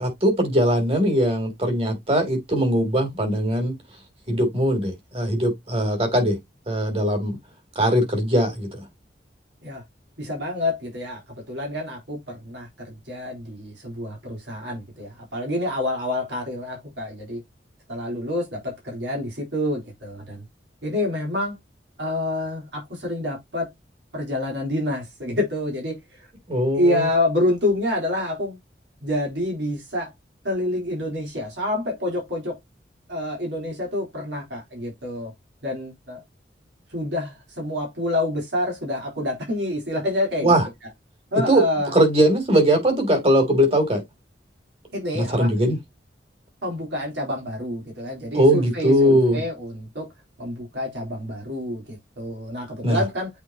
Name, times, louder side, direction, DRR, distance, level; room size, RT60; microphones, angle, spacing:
voice 1, 0.0-3.7 4.3-6.4 6.7-7.3 7.7-8.8 26.5-27.0 40.4-40.6 41.5-41.6 41.9-44.0 45.1-45.8 48.3-49.4 52.8-53.0, equal, 30° right, 3.1 m, -20 dB
voice 2, 10.2-11.2 11.5-17.4 17.9-20.4 20.8-21.6 22.0-23.7 24.1-26.0 26.7-28.6 29.0-30.1 30.4-32.6 33.1-35.3 35.6-36.2 36.9-40.6 41.3-41.9 44.9-45.5 46.6-50.1 50.4-53.3, left 1 dB, 75° right, 3.9 m, -27 dB
8.3 x 4.4 x 2.9 m
head